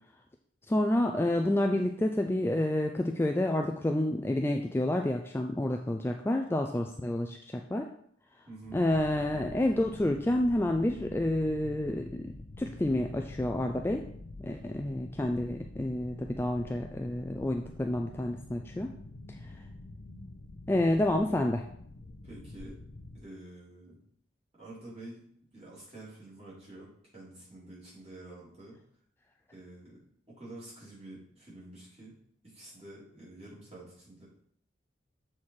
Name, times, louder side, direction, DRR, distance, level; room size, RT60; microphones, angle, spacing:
voice 1, 0.7-7.9 8.7-12.2 12.6-14.0 14.4-18.9 20.7-21.6, left 1 dB, 10° left, 3 dB, 0.3 m, -29 dB
voice 2, 8.5-8.8 22.2-22.8 23.1-24.0 24.6-25.2 25.5-28.8 29.5-30.0 30.3-32.1 32.4-34.3, right 1 dB, 30° right, -7 dB, 3.2 m, -48 dB
sound 1, 8.6-23.3, left 2 dB, 65° left, 0.7 m, -47 dB
7.3 x 4.4 x 4.7 m, 0.66 s
head